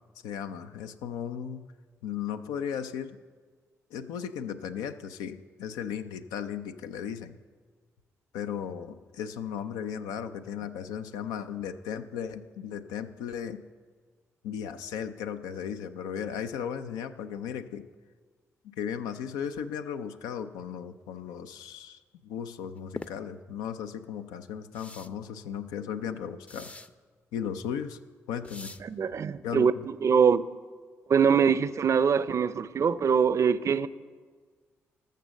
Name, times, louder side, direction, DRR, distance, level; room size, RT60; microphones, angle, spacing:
voice 1, 0.2-1.6 2.0-3.2 3.9-7.4 8.3-13.6 14.4-17.8 18.8-26.7 27.3-28.0 28.3-28.7 29.4-29.9, left 8 dB, 80° left, 0.5 m, -36 dB
sound 1, 23.0-23.1 24.7-25.1 26.5-26.9 28.4-28.8, left 2 dB, 20° left, 0.6 m, -42 dB
voice 2, 28.8-30.4 31.1-33.9, right 6 dB, 50° right, 0.5 m, -23 dB
13.5 x 6.5 x 6.4 m
hypercardioid pair, 45°, 6 cm